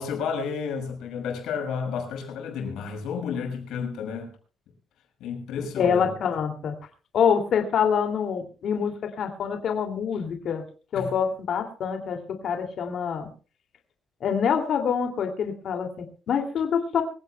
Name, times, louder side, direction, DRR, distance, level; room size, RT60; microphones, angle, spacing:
voice 1, 0.0-4.3 5.2-6.1 10.9-11.1, left 6 dB, 85° left, 6.3 m, -31 dB
voice 2, 5.8-6.7 7.1-10.6 10.9-13.3 14.2-17.0, left 7 dB, 55° left, 2.4 m, -26 dB
25.0 x 16.5 x 2.2 m
cardioid pair, 155°, 0 cm